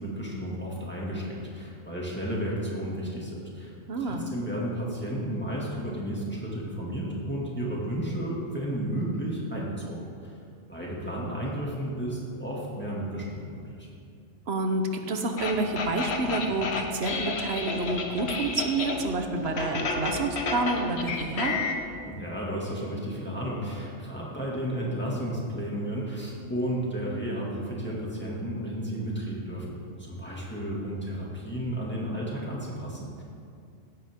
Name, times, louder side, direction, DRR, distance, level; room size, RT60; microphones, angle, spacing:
voice 1, 0.0-10.3 10.7-13.9 22.0-33.2, right 1 dB, 10° left, -5 dB, 2.2 m, -33 dB
voice 2, 3.9-4.3 14.5-14.8 15.1-21.6, right 3 dB, 60° right, 5 dB, 1.2 m, -29 dB
sound 1, 15.4-19.1 19.4-21.7, left 3 dB, 60° left, 1.3 m, -31 dB
16.5 x 9.3 x 3.7 m, 2.4 s
omnidirectional pair, 1.3 m